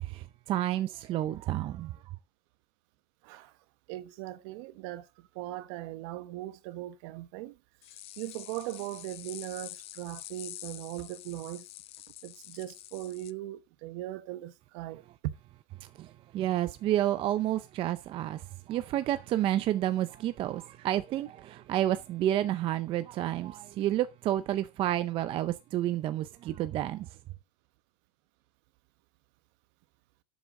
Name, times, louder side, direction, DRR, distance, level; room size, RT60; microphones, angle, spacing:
voice 1, 0.0-2.0 15.8-27.2, right 13 dB, 25° right, 0.5 m, -30 dB
voice 2, 3.9-7.6 8.2-11.7 12.2-15.3, right 15 dB, 45° right, 1.1 m, -39 dB
sound 1, 7.8-13.3, left 16 dB, 30° left, 0.6 m, -46 dB
12.0 x 8.0 x 3.6 m
supercardioid pair, 150°, 21 cm